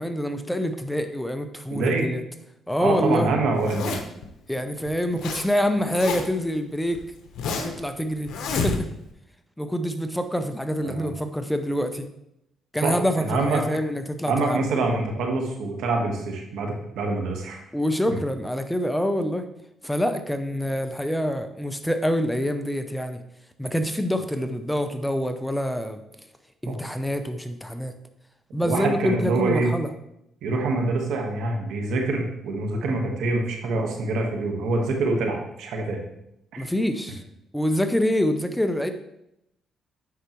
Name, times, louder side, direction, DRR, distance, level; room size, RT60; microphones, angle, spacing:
voice 1, 0.0-2.2 2.7-3.3 4.5-7.0 7.6-8.9 9.6-12.1 12.7-14.6 17.7-19.5 19.8-23.2 23.6-26.0 26.6-27.9 28.5-29.9 36.6-37.2 37.5-38.9, equal, 5° left, 8 dB, 0.6 m, -26 dB
voice 2, 1.7-2.1 2.8-4.0 10.8-11.1 12.8-13.7 14.3-17.6 18.1-18.2 26.7-26.8 28.6-29.7 30.4-36.0 36.5-36.6, right 3 dB, 80° right, 2 dB, 1.4 m, -25 dB
Zipper (clothing), 3.6-4.3 4.9-5.5 5.7-6.5 6.9-7.8 8.3-9.1, left 4 dB, 80° left, 0.9 m, -29 dB
8.3 x 5.7 x 3.1 m, 0.81 s
cardioid pair, 90°, 0 cm